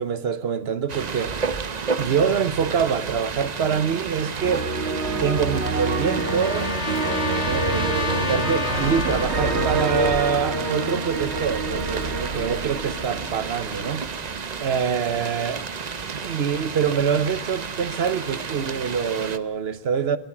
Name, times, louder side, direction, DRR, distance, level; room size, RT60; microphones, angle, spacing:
voice 1, 0.0-1.6 2.0-4.7 5.2-6.7 7.1-14.0 14.6-15.6 16.1-20.2, right 7 dB, 70° right, 1.1 m, -25 dB
sound 1, 0.9-19.4, right 5 dB, 45° right, 0.8 m, -32 dB
sound 2, 4.4-14.5, right 3 dB, 90° right, 1.8 m, -27 dB
Trumpet, 5.1-9.9, left 7 dB, 85° left, 1.5 m, -31 dB
23.0 x 12.5 x 10.0 m
omnidirectional pair, 1.1 m